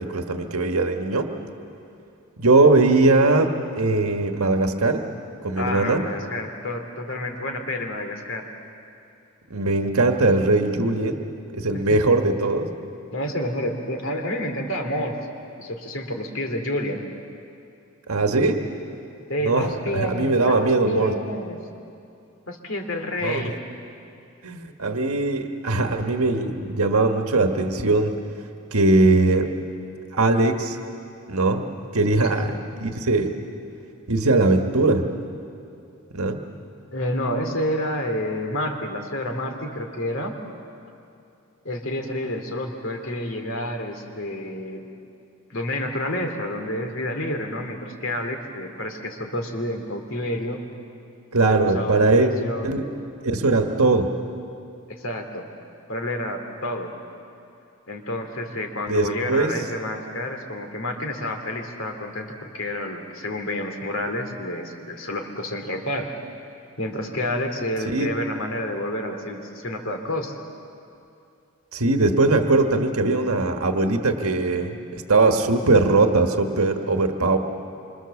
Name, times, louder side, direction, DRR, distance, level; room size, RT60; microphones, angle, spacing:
voice 1, 0.0-1.3 2.4-5.0 5.4-6.0 9.5-11.2 11.5-12.7 18.1-18.6 19.4-21.1 23.2-23.5 24.4-28.2 28.7-29.5 30.1-30.8 31.3-31.6 31.9-33.4 34.1-35.1 36.1-36.4 51.3-52.3 52.6-52.8 53.2-54.1 58.9-59.5 67.9-68.1 71.7-77.4, right 2 dB, 85° right, 4 dB, 1.5 m, -20 dB
voice 2, 5.5-8.5 11.7-12.0 13.1-15.2 15.6-17.0 19.3-21.6 22.5-23.6 32.3-32.5 36.9-40.4 41.6-44.9 45.5-50.6 51.4-52.7 54.9-55.5 55.9-56.9 57.9-66.1 66.8-70.4, left 1 dB, 65° left, 4 dB, 2.9 m, -29 dB
27.0 x 25.5 x 7.2 m, 2.6 s
head